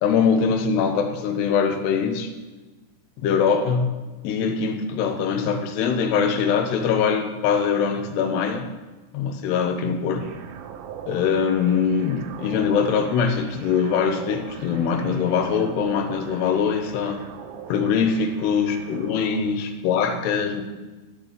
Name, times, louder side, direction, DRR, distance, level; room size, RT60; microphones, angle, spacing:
voice 1, 0.0-2.3 3.2-3.9 4.2-8.7 9.1-10.3 11.1-17.2 17.7-20.6, left 6 dB, 75° left, 7 dB, 3.0 m, -22 dB
sound 1, 10.2-19.4, right 7 dB, 75° right, 2.1 m, -40 dB
12.5 x 6.8 x 8.3 m, 1.2 s
omnidirectional pair, 5.1 m